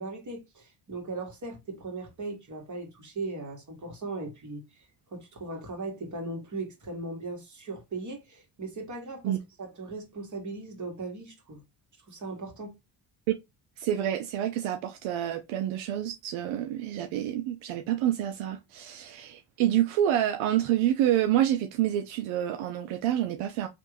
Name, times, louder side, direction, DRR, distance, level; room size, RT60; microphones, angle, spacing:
voice 1, 0.0-4.9 5.1-11.6 12.1-12.7, right 3 dB, 35° right, 1.7 m, -38 dB
voice 2, 13.8-23.7, right 11 dB, 75° right, 0.6 m, -28 dB
3.1 x 2.5 x 3.3 m
supercardioid pair, 70°, 48 cm